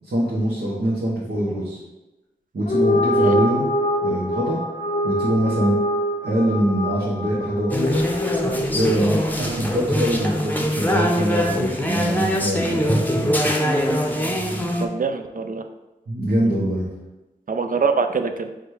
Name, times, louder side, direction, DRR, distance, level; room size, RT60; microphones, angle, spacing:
voice 1, 0.0-1.8 2.5-3.7 4.0-4.6 5.0-5.8 6.2-8.0 8.7-13.5 16.1-16.9, equal, 70° right, -6 dB, 1.0 m, -23 dB
sound 1, 2.6-9.2, equal, 45° left, 0.6 m, -24 dB
sound 2, 7.7-14.9, equal, 10° left, 0.7 m, -23 dB
voice 2, 14.8-15.6 17.5-18.5, right 5 dB, 50° right, 7 dB, 0.5 m, -24 dB
4.9 x 2.3 x 4.7 m, 1.0 s
cardioid pair, 45°, 17 cm